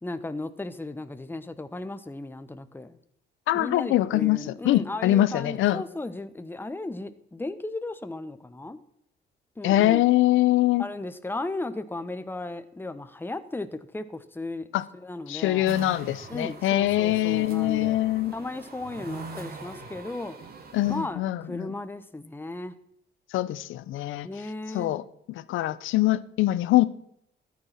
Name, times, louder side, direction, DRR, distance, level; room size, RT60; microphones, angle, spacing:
voice 1, 0.0-3.0 3.5-8.8 9.6-10.0 10.8-14.7 14.9-15.7 16.3-18.0 18.3-20.5 20.9-22.7 24.2-24.9, left 2 dB, 10° left, 1.0 m, -35 dB
voice 2, 3.5-5.8 9.6-10.9 14.7-14.8 15.3-18.3 20.7-21.7 23.3-24.3 24.7-25.0 25.3-26.9, left 15 dB, 85° left, 0.7 m, -23 dB
sound 1, 15.6-21.1, right 3 dB, 50° right, 2.9 m, -42 dB
14.0 x 9.7 x 5.8 m
cardioid pair, 90°, 20 cm